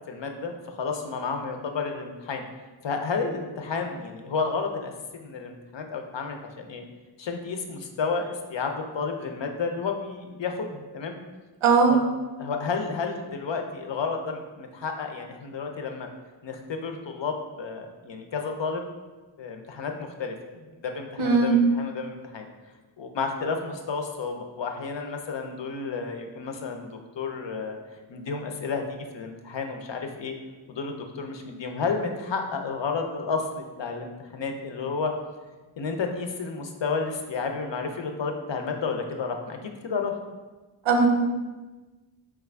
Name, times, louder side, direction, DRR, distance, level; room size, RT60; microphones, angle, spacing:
voice 1, 0.1-2.4 2.8-4.9 5.2-6.8 7.2-11.2 11.9-12.0 12.4-16.1 16.4-18.8 19.4-22.5 23.0-26.9 27.1-27.8 28.1-30.3 30.7-35.1 35.8-40.2, left 4 dB, 65° left, 4 dB, 0.5 m, -31 dB
voice 2, 11.6-11.9 21.2-21.5 40.9-41.1, right 4 dB, 85° right, 2 dB, 0.6 m, -19 dB
4.5 x 2.4 x 3.3 m, 1.2 s
wide cardioid pair, 65°, 48 cm